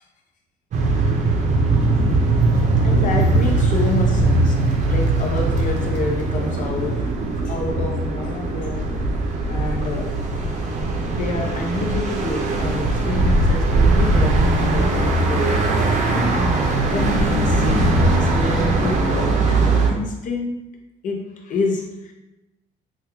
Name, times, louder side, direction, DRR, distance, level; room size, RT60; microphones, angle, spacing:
sound 1, 0.7-19.9, right 2 dB, 45° right, 0.6 m, -20 dB
voice 1, 2.5-7.1 7.4-9.1 9.5-10.2 11.1-20.7 21.0-22.1, left 3 dB, 50° left, 1 dB, 0.7 m, -28 dB
3.4 x 2.3 x 3.0 m, 0.97 s
cardioid pair, 110°, 17 cm